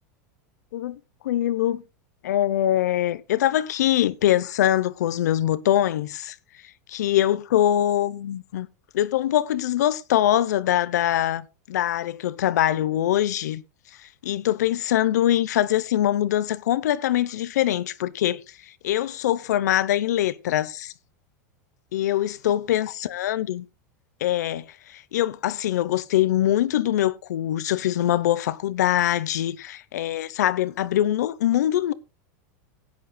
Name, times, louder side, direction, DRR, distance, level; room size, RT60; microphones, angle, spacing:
voice 1, 0.7-1.8 2.2-6.4 6.9-8.7 8.9-13.6 14.0-20.9 21.9-23.6 24.2-31.9, left 12 dB, 85° left, 0.8 m, -23 dB
16.5 x 10.5 x 2.3 m
supercardioid pair, 135°, 9 cm